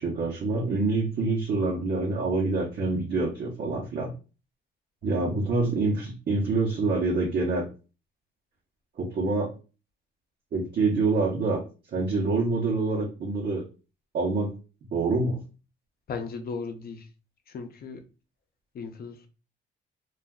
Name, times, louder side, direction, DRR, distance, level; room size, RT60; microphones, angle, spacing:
voice 1, 0.0-4.1 5.0-7.7 9.0-9.5 10.5-11.6 11.9-13.6 14.1-14.5 14.9-15.4, right 3 dB, 60° right, 0.9 m, -26 dB
voice 2, 16.1-17.1 17.5-18.0 18.7-19.3, left 5 dB, 50° left, 0.6 m, -36 dB
2.4 x 2.2 x 3.5 m
cardioid pair, 90°, 20 cm